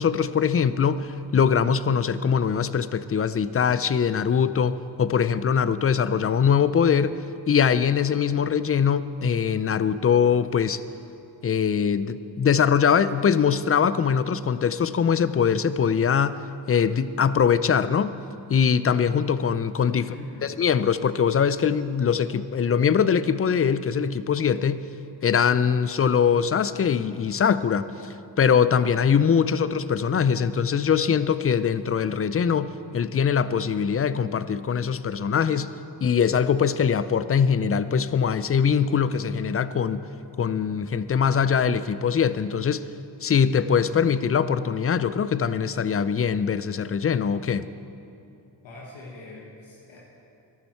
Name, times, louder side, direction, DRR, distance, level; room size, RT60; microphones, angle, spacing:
voice 1, 0.0-7.2 7.5-10.8 11.4-16.4 16.7-18.1 18.5-20.1 20.4-24.8 25.2-28.1 28.4-35.7 36.0-40.0 40.4-42.9 43.2-47.7, left 7 dB, 30° left, 15 dB, 0.5 m, -22 dB
voice 2, 20.0-20.6 48.6-50.0, left 2 dB, 80° left, -4 dB, 1.8 m, -42 dB
14.5 x 12.0 x 4.6 m, 2.7 s
supercardioid pair, 50°, 45 cm